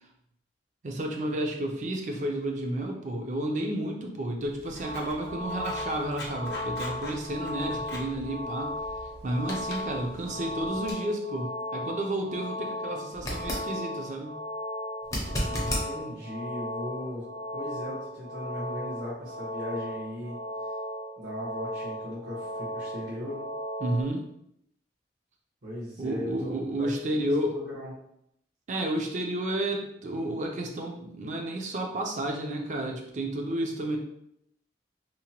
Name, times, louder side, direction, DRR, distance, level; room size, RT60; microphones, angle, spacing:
voice 1, 0.8-8.8 9.2-14.4 23.8-24.3 26.0-27.6 28.7-34.0, right 1 dB, 40° right, 2 dB, 0.4 m, -31 dB
Writing, 4.4-10.9, left 1 dB, 65° left, 0.5 m, -44 dB
sound 1, 4.8-24.0, left 1 dB, 60° right, 0.8 m, -36 dB
sound 2, 13.1-13.7 15.0-15.9 18.9-19.0, equal, 20° left, 0.5 m, -30 dB
voice 2, 15.3-17.2 17.5-20.4 21.2-23.4 25.6-27.2 27.5-27.9, left 1 dB, 90° right, -7 dB, 1.0 m, -38 dB
2.9 x 2.1 x 2.8 m, 0.76 s
head